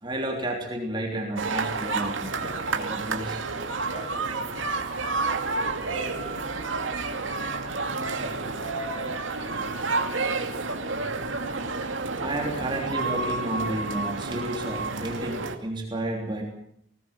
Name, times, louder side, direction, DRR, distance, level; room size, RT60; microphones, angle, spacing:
voice 1, 0.0-3.4 12.2-16.4, right 1 dB, 25° right, 0 dB, 3.3 m, -32 dB
sound 1, 1.4-15.5, right 3 dB, 80° right, 2.3 m, -30 dB
voice 2, 3.9-6.3 7.7-9.9, equal, 30° left, 3 dB, 6.0 m, -45 dB
20.0 x 18.5 x 7.4 m, 0.72 s
head